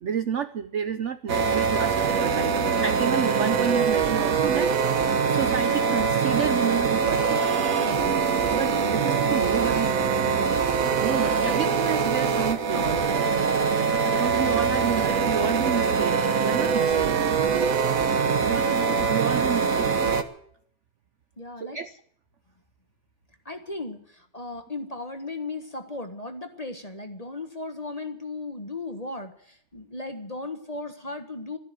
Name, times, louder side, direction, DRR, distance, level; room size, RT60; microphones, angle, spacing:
voice 1, 0.0-5.0 5.2-7.4 8.5-10.3 11.0-13.1 14.1-17.2 18.4-20.0 21.6-22.0, right 8 dB, 65° right, 10 dB, 0.7 m, -30 dB
sound 1, 1.3-20.2, right 5 dB, 50° right, 1.4 m, -23 dB
voice 2, 18.2-18.6 21.4-21.8 23.4-31.6, left 2 dB, 20° left, 7 dB, 1.2 m, -36 dB
13.0 x 11.5 x 9.2 m, 0.63 s
omnidirectional pair, 2.2 m